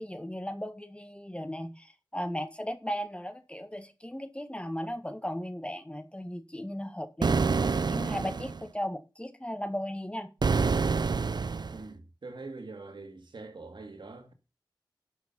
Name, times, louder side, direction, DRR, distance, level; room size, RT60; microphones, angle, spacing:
voice 1, 0.0-10.3, equal, 15° left, 1.5 m, -36 dB
sound 1, 7.2-8.6 10.4-11.8, right 4 dB, 60° right, 0.5 m, -27 dB
voice 2, 11.7-14.3, right 3 dB, 75° right, 2.2 m, -44 dB
12.0 x 6.3 x 5.3 m
wide cardioid pair, 60°, 8 cm